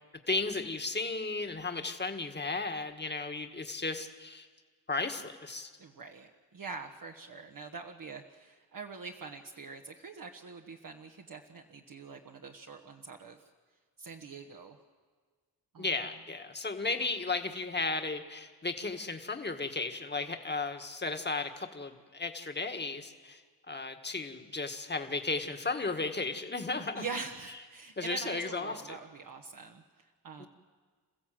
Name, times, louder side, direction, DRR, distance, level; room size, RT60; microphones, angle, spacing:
voice 1, 0.3-4.5 4.9-5.7 15.8-23.4 23.7-27.0 28.0-29.0 30.4-30.5, left 3 dB, 25° left, 6 dB, 1.9 m, -34 dB
voice 2, 5.8-13.5 14.0-14.8 15.7-15.9 26.9-30.5, right 4 dB, 55° right, 2 dB, 1.4 m, -44 dB
28.5 x 15.0 x 7.8 m, 1.5 s
cardioid pair, 65°, 38 cm